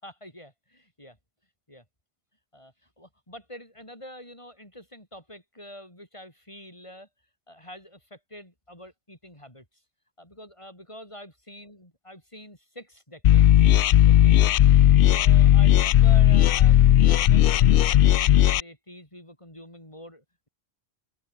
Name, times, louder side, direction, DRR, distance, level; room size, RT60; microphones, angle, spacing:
voice 1, 0.0-1.2 1.7-1.8 2.5-7.1 7.5-9.8 10.2-13.5 14.0-14.4 15.0-20.5, equal, 30° left, 6.7 m, -46 dB
sound 1, 13.2-18.6, left 12 dB, 65° left, 0.7 m, -16 dB
open air
omnidirectional pair, 1.1 m